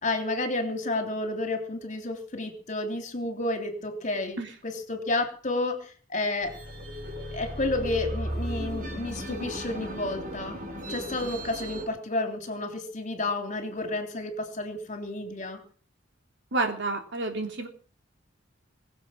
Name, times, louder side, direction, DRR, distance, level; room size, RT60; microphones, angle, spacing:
voice 1, 0.0-6.5 7.3-10.6 10.9-15.6, left 2 dB, 40° left, 5 dB, 3.4 m, -31 dB
sound 1, 6.4-11.8, equal, 40° right, 6.5 m, -35 dB
voice 2, 16.5-17.7, right 3 dB, 60° right, 4 dB, 3.2 m, -29 dB
22.0 x 7.6 x 7.4 m, 0.42 s
head